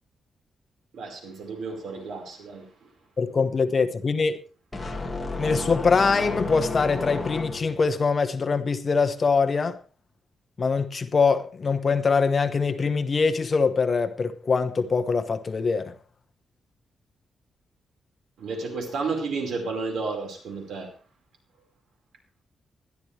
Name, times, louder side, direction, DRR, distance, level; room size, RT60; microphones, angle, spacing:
voice 1, 0.9-2.9 18.4-20.9, right 4 dB, 80° right, 5.0 m, -32 dB
voice 2, 3.2-4.4 5.4-9.8 10.6-15.9, left 4 dB, 30° left, 1.1 m, -23 dB
sound 1, 4.7-7.9, left 2 dB, 10° left, 2.0 m, -32 dB
20.5 x 12.5 x 3.4 m
wide cardioid pair, 170°, 0 cm